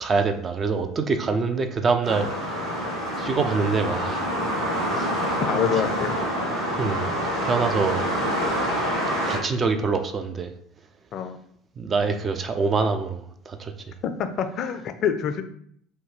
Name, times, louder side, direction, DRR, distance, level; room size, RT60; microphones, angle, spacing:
voice 1, 0.0-2.3 3.2-4.3 5.0-5.1 6.8-7.1 7.4-8.0 9.3-10.5 11.8-13.7, right 4 dB, 35° right, 7 dB, 0.4 m, -25 dB
sound 1, 2.0-9.4, equal, 60° right, 1.5 m, -26 dB
voice 2, 5.5-6.2 11.1-11.4 14.0-15.4, left 7 dB, 50° left, 8 dB, 0.3 m, -26 dB
2.7 x 2.2 x 3.0 m, 0.64 s
hypercardioid pair, 70°, 0 cm